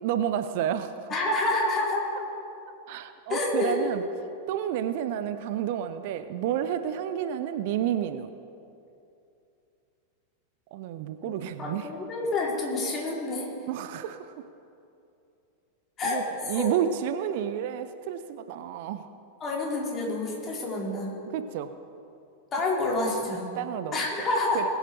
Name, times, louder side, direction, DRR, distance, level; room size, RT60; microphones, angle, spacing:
voice 1, 0.0-1.1 2.9-4.0 4.5-8.3 10.7-11.9 13.7-14.4 16.0-19.1 21.3-21.7 23.5-24.3 24.5-24.7, right 10 dB, 50° right, 10 dB, 0.5 m, -30 dB
voice 2, 1.1-2.1 3.3-3.9 11.2-11.3 11.6-13.5 16.0-16.7 19.4-21.1 22.5-23.5 23.9-24.6, left 2 dB, 25° left, -2 dB, 3.3 m, -28 dB
20.5 x 8.0 x 4.7 m, 2.6 s
figure-of-eight pair, 90°, 0 cm